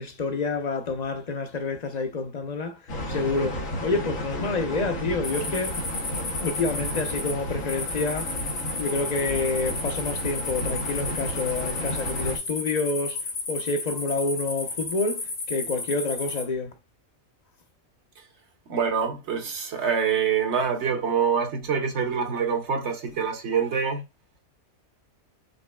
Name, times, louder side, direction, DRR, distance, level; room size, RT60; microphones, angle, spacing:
voice 1, 0.0-5.8 6.4-8.4 8.8-16.7, left 3 dB, 40° left, 0.7 m, -28 dB
sound 1, 2.9-12.4, equal, 85° left, 1.5 m, -33 dB
sound 2, 5.2-16.4, left 3 dB, 70° left, 1.6 m, -33 dB
voice 2, 18.7-24.0, right 6 dB, 60° right, 1.2 m, -25 dB
5.2 x 3.3 x 2.2 m
omnidirectional pair, 1.3 m